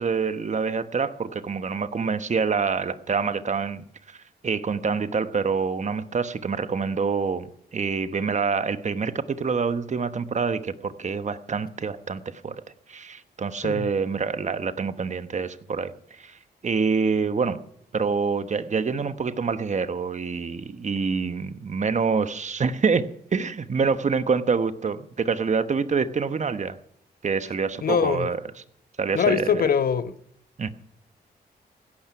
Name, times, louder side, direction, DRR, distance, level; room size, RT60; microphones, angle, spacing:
voice 1, 0.0-4.2 4.4-12.6 12.9-16.4 16.6-17.6 17.9-26.8 27.2-28.4 29.0-29.6 30.6-30.7, right 5 dB, 45° right, 1.1 m, -26 dB
voice 2, 27.8-28.3 29.1-30.1, left 7 dB, 60° left, 1.0 m, -23 dB
16.5 x 12.0 x 5.8 m
cardioid pair, 75°, 17 cm